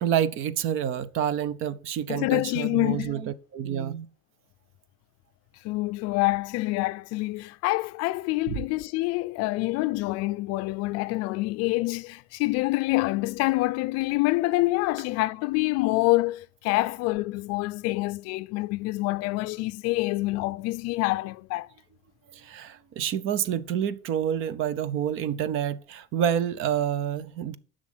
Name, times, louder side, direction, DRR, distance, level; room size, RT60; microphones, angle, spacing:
voice 1, 0.0-4.1 8.5-8.6 22.3-27.6, right 9 dB, 40° right, 0.6 m, -28 dB
voice 2, 2.1-3.1 5.6-21.7, left 21 dB, 55° left, 0.5 m, -26 dB
11.0 x 6.4 x 6.1 m
cardioid pair, 175°, 31 cm